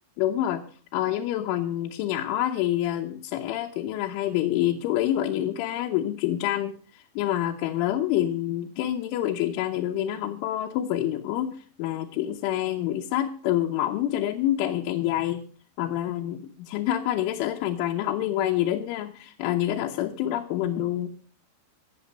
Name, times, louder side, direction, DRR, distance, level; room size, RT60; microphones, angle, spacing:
voice 1, 0.2-0.6 0.9-15.4 15.8-21.1, left 12 dB, 80° left, 2 dB, 3.3 m, -27 dB
17.0 x 7.3 x 6.4 m, 0.42 s
omnidirectional pair, 5.6 m